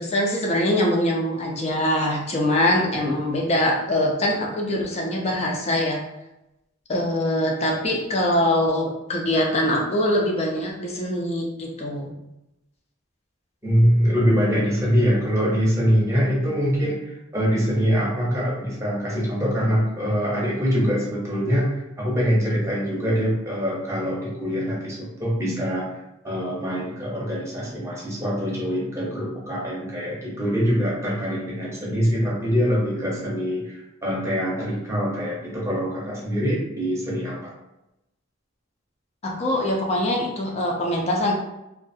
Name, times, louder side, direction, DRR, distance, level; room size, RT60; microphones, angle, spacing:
voice 1, 0.0-6.0 6.9-12.1 39.2-41.3, left 1 dB, 30° left, -1 dB, 0.4 m, -23 dB
voice 2, 13.6-37.5, equal, 15° right, -5 dB, 0.7 m, -24 dB
2.4 x 2.3 x 2.6 m, 0.92 s
head